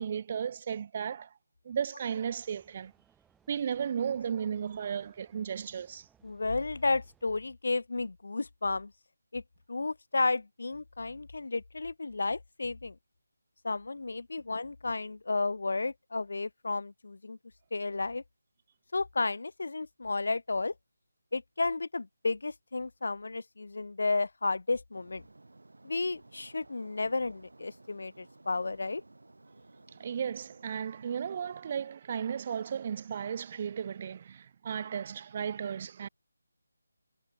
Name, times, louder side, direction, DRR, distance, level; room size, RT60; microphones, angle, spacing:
voice 1, 0.0-1.3 1.6-2.9 3.5-6.1 29.9-36.1, right 7 dB, 25° right, 0.4 m, -35 dB
sound 1, 2.1-7.2, right 8 dB, 5° right, 4.5 m, -68 dB
voice 2, 6.2-8.9 9.3-9.4 9.7-13.0 13.6-17.4 17.7-18.2 18.9-20.7 21.3-25.2 25.8-29.0, left 3 dB, 65° left, 0.4 m, -32 dB
sound 2, 24.9-31.6, right 2 dB, 85° right, 3.3 m, -56 dB
figure-of-eight pair, 170°, 0 cm